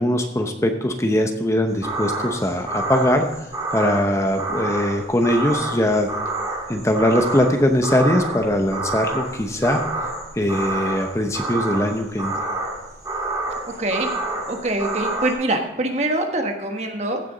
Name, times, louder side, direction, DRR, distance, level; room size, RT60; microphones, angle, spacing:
voice 1, 0.0-6.1 6.7-9.8 10.4-12.5, left 1 dB, 15° left, 5 dB, 0.8 m, -21 dB
sound 1, 1.7-15.3, right 2 dB, 20° right, 2.9 m, -28 dB
voice 2, 13.6-14.1 14.5-17.2, right 2 dB, 40° right, 4 dB, 1.4 m, -24 dB
15.5 x 6.8 x 3.9 m, 0.90 s
head